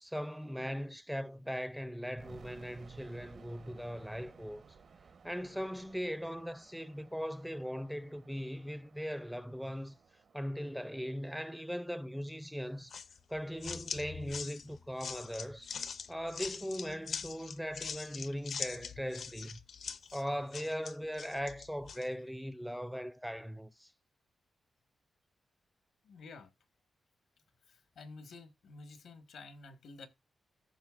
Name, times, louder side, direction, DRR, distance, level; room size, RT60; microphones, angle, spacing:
voice 1, 0.0-4.6 5.2-10.0 10.3-13.0 13.3-15.7 16.1-19.6 20.1-23.9, equal, ahead, 0.4 m, -39 dB
sound 1, 2.2-13.1, right 5 dB, 60° right, 0.9 m, -59 dB
sound 2, 12.9-22.1, left 6 dB, 65° left, 0.6 m, -43 dB
voice 2, 26.0-26.5 27.7-30.1, left 3 dB, 85° left, 1.3 m, -51 dB
14.5 x 6.2 x 2.4 m
wide cardioid pair, 125°, 0 cm